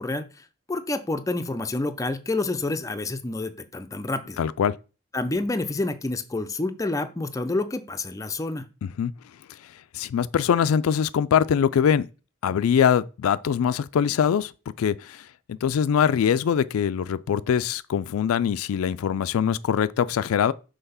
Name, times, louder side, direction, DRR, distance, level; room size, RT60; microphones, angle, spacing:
voice 1, 0.0-4.4 5.1-8.7, left 2 dB, 15° left, 0.4 m, -28 dB
voice 2, 4.4-4.8 8.8-9.1 9.9-12.1 12.4-14.5 14.8-20.5, left 8 dB, 85° left, 0.3 m, -23 dB
5.8 x 3.3 x 5.5 m
head